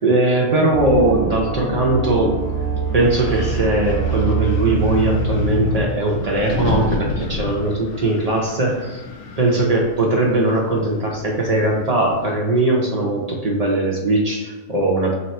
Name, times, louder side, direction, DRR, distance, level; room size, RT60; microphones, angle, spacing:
voice 1, 0.0-2.4 2.9-9.0 9.4-15.2, right 2 dB, 65° right, -2 dB, 0.3 m, -19 dB
sound 1, 0.7-5.9, right 4 dB, 85° right, 1.2 m, -23 dB
Wind, 2.4-12.3, left 3 dB, 70° left, 0.9 m, -31 dB
3.1 x 2.9 x 4.2 m, 1.3 s
omnidirectional pair, 1.3 m